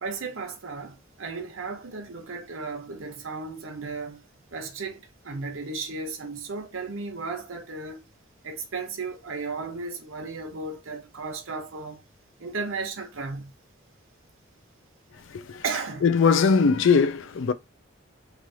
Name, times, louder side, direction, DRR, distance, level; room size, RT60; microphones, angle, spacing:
voice 1, 0.0-4.2 4.5-8.1 8.4-12.0 12.4-13.5 15.6-16.1, right 4 dB, 80° right, 0.9 m, -35 dB
voice 2, 15.3-15.6 16.0-17.5, left 5 dB, 70° left, 0.4 m, -20 dB
3.2 x 2.4 x 2.7 m
head